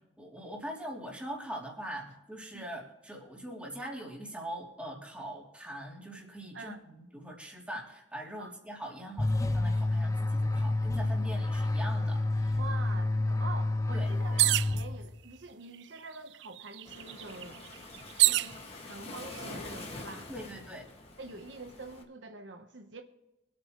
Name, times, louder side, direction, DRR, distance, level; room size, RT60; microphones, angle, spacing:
voice 1, 0.2-12.6 13.9-14.4 20.3-20.8, right 1 dB, 5° right, 3.0 m, -42 dB
sound 1, 9.2-15.3, left 2 dB, 20° left, 0.6 m, -29 dB
voice 2, 12.6-17.7 18.2-20.3 21.2-23.0, right 3 dB, 85° right, 1.1 m, -46 dB
sound 2, 14.4-14.8 15.7-15.8 16.1-18.5 19.3-19.8, right 17 dB, 65° right, 0.3 m, -27 dB
Waves surf, 16.8-22.0, left 2 dB, 35° left, 1.9 m, -45 dB
24.5 x 8.7 x 3.1 m
head